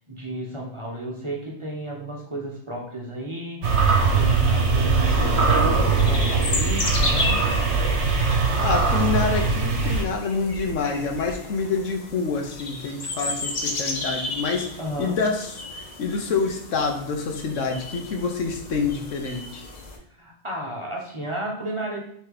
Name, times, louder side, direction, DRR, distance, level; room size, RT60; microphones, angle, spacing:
voice 1, 0.0-7.4 14.8-15.1 20.2-22.0, right 1 dB, 25° right, -2 dB, 1.1 m, -33 dB
sound 1, 3.6-10.0, right 4 dB, 60° right, 1.2 m, -21 dB
sound 2, 5.3-20.0, left 2 dB, 35° left, 0.9 m, -33 dB
voice 2, 8.4-14.7 15.0-19.6, left 4 dB, 70° left, 4 dB, 1.2 m, -27 dB
5.8 x 3.4 x 4.9 m, 0.67 s
omnidirectional pair, 1.4 m